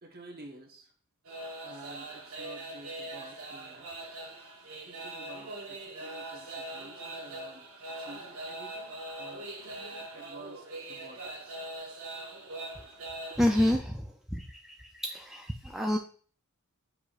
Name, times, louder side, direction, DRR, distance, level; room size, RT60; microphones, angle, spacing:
voice 1, 0.0-0.9 1.6-3.9 4.8-11.6, right 2 dB, 45° right, 1 dB, 1.2 m, -51 dB
sound 1, 1.3-13.7, right 2 dB, 75° right, 1.5 m, -42 dB
voice 2, 13.4-16.0, left 1 dB, ahead, 1 dB, 0.4 m, -29 dB
8.1 x 4.8 x 2.5 m, 0.43 s
head